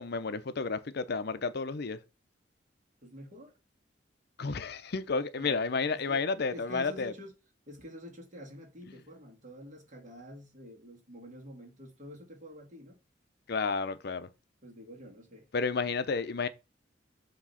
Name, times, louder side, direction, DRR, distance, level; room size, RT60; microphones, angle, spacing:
voice 1, 0.0-2.0 4.4-7.1 13.5-14.3 15.5-16.5, left 4 dB, 60° left, 0.6 m, -31 dB
voice 2, 3.0-3.6 5.4-7.3 7.7-13.0 14.6-15.5, equal, 45° right, 2.0 m, -48 dB
7.4 x 3.0 x 5.6 m
head